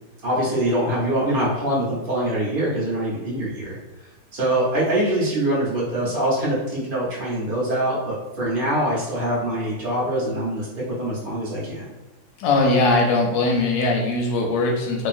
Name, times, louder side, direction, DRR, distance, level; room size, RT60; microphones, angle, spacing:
voice 1, 0.2-3.8 4.3-11.9, right 1 dB, 50° right, -6 dB, 0.6 m, -24 dB
voice 2, 12.4-15.1, left 2 dB, 85° left, 1 dB, 1.3 m, -20 dB
2.8 x 2.7 x 2.4 m, 1.1 s
omnidirectional pair, 2.0 m